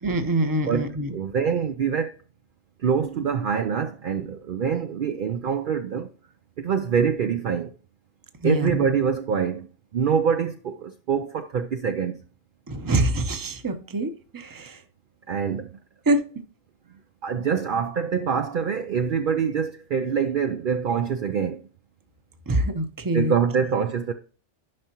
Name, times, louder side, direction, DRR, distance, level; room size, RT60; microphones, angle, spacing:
voice 1, 0.0-1.1 8.4-8.9 12.7-14.8 16.1-16.3 22.5-23.3, right 1 dB, 20° right, 0.7 m, -25 dB
voice 2, 0.7-2.1 2.8-6.1 6.6-7.7 8.4-9.7 9.9-12.2 15.3-15.7 17.2-21.6 23.1-24.1, right 7 dB, 55° right, 0.6 m, -25 dB
11.0 x 5.6 x 3.0 m
omnidirectional pair, 1.2 m